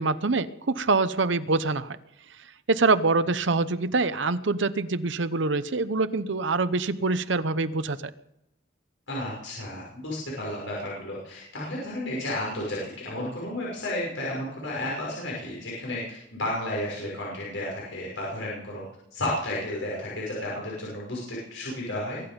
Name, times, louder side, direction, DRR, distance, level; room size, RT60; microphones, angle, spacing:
voice 1, 0.0-2.0 2.7-8.0, right 3 dB, 70° right, 13 dB, 0.8 m, -25 dB
voice 2, 9.1-18.8 19.1-22.2, left 1 dB, 80° left, -4 dB, 6.2 m, -32 dB
23.0 x 11.0 x 5.3 m, 0.81 s
head